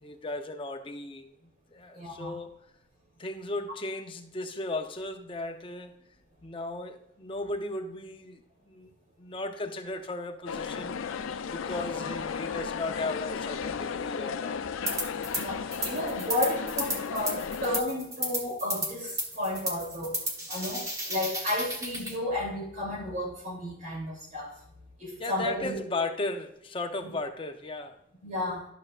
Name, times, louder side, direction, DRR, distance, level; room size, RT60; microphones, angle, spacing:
voice 1, 0.0-2.6 3.2-6.0 6.4-8.9 9.2-11.0 11.5-14.7 25.2-28.0, left 2 dB, 25° left, 0.6 m, -36 dB
voice 2, 1.9-2.4 11.7-12.0 15.3-20.2 20.5-24.5 25.0-25.8 27.0-27.1 28.2-28.7, left 1 dB, 40° right, 2.9 m, -33 dB
sound 1, 10.5-17.8, left 6 dB, 85° left, 0.4 m, -34 dB
sound 2, 14.9-15.4 15.7-22.1, right 1 dB, 15° right, 1.1 m, -33 dB
12.0 x 6.4 x 2.4 m
head